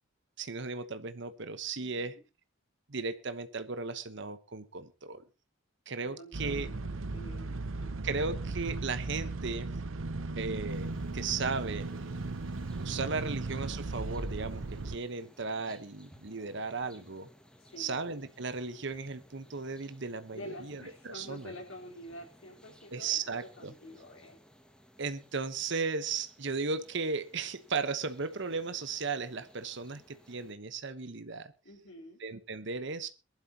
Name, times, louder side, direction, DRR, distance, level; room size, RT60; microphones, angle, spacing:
voice 1, 0.4-2.1 2.9-5.2 5.9-6.7 8.0-9.7 10.4-11.9 12.8-17.3 17.8-21.5 22.9-23.7 25.0-31.5 32.2-33.1, right 4 dB, 65° right, 1.1 m, -36 dB
voice 2, 1.8-2.2 6.0-8.0 17.6-18.0 20.3-24.4 31.6-32.2, left 1 dB, 85° left, 4.1 m, -48 dB
sound 1, 6.3-15.0, right 3 dB, 85° right, 0.9 m, -37 dB
sound 2, 10.7-30.5, equal, 5° left, 1.7 m, -60 dB
22.5 x 12.0 x 2.9 m
head